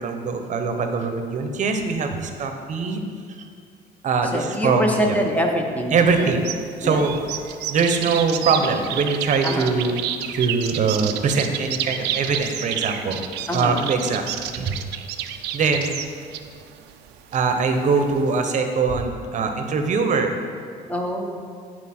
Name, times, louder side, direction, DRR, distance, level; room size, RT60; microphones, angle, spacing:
voice 1, 0.0-3.0 4.0-5.2 5.9-6.5 6.8-7.2 7.7-13.2 13.5-14.2 14.5-14.8 15.5-15.9 17.3-20.4, right 4 dB, 45° right, 5 dB, 0.8 m, -22 dB
voice 2, 4.3-6.4 6.8-7.0 9.4-9.8 13.5-13.9 20.9-21.3, equal, 10° left, 2 dB, 0.9 m, -25 dB
sound 1, 6.1-18.5, right 11 dB, 80° right, 0.5 m, -30 dB
9.5 x 4.4 x 4.3 m, 2.1 s
cardioid pair, 110°, 17 cm